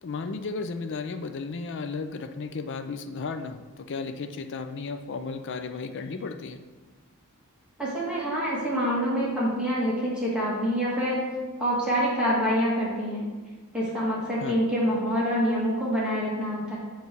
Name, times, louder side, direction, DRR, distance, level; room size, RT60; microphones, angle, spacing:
voice 1, 0.0-6.6 14.4-14.6, left 4 dB, 55° left, 8 dB, 0.5 m, -34 dB
voice 2, 7.8-11.3 11.6-13.3 13.7-16.8, equal, 5° right, -8 dB, 1.9 m, -26 dB
8.1 x 3.3 x 6.0 m, 1.3 s
head